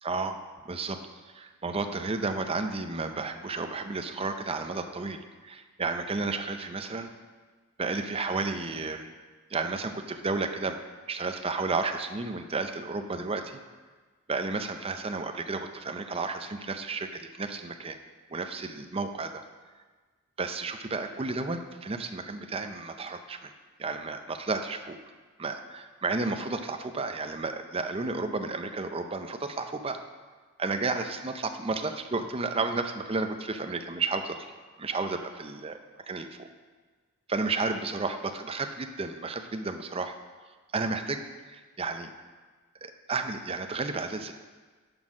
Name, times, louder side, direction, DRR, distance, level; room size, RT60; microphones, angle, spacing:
voice 1, 0.0-7.1 7.8-9.1 9.5-10.8 11.1-13.6 14.3-18.0 18.3-19.4 20.4-23.5 23.8-25.0 25.4-30.0 30.6-34.5 34.8-35.8 36.1-36.5 37.3-40.1 40.7-42.1 42.8-44.3, right 3 dB, 25° right, 7 dB, 0.6 m, -32 dB
9.6 x 4.4 x 6.1 m, 1.4 s
head